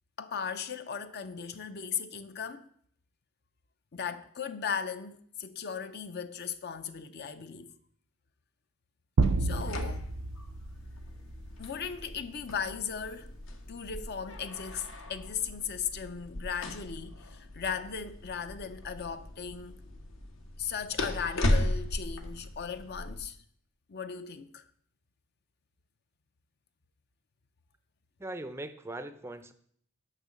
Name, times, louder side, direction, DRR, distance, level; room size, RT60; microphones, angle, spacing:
voice 1, 0.2-2.6 3.9-7.7 9.4-10.1 11.6-13.3 13.7-19.8 20.6-23.4 23.9-24.6, left 7 dB, 50° left, 0.6 m, -37 dB
sound 1, 9.2-23.2, left 1 dB, 70° left, 1.1 m, -37 dB
sound 2, 9.2-11.7, right 3 dB, 85° right, 0.5 m, -30 dB
voice 2, 28.2-29.5, right 1 dB, 10° right, 0.5 m, -40 dB
6.7 x 5.8 x 7.4 m
head